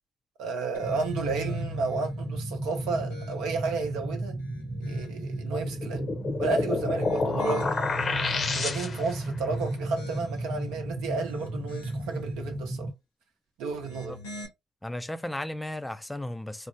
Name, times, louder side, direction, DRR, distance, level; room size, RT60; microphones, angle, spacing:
voice 1, 0.4-4.4 4.8-6.1 6.4-7.8 8.5-12.9 13.6-14.1, right 4 dB, 65° right, 0.8 m, -32 dB
sound 1, 0.7-2.0 2.6-3.7 4.2-5.3 6.8-8.9 9.4-10.6 11.1-12.2 13.7-14.5, left 3 dB, 85° left, 0.9 m, -44 dB
sound 2, 0.8-12.9, right 1 dB, 15° right, 0.7 m, -34 dB
sound 3, 5.6-9.2, left 4 dB, 40° left, 0.7 m, -29 dB
voice 2, 14.8-16.7, left 1 dB, 10° left, 0.4 m, -35 dB
3.9 x 2.0 x 2.5 m
hypercardioid pair, 50°, 0 cm